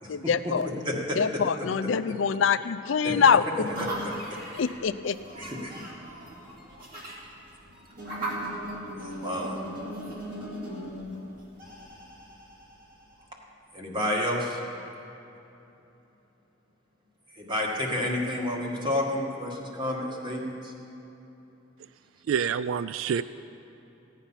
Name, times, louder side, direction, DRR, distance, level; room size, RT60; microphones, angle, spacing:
voice 1, 0.1-0.7 1.2-3.4 4.6-5.2, left 6 dB, 70° left, 11 dB, 0.4 m, -24 dB
voice 2, 0.8-1.4 1.8-1.9 3.0-3.2 4.0-4.4 5.3-5.8 9.0-9.6 13.7-14.6 17.3-20.7, left 1 dB, 25° right, -2 dB, 1.8 m, -30 dB
sound 1, 3.6-13.2, right 1 dB, 45° right, 2.4 m, -38 dB
voice 3, 22.3-23.2, right 7 dB, 80° right, 15 dB, 0.3 m, -27 dB
16.0 x 9.1 x 5.7 m, 3.0 s
head